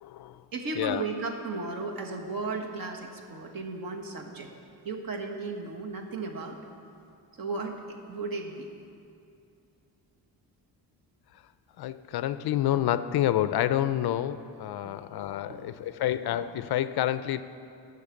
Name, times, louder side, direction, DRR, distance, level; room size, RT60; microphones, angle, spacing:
voice 1, 0.0-0.4 0.8-1.0 11.8-17.4, left 12 dB, 60° left, 13 dB, 0.5 m, -28 dB
voice 2, 0.5-4.5 4.8-6.6 7.4-8.7 14.8-15.0 15.5-15.7, right 3 dB, 55° right, 2 dB, 1.4 m, -35 dB
10.5 x 6.5 x 8.3 m, 2.5 s
cardioid pair, 110°, 42 cm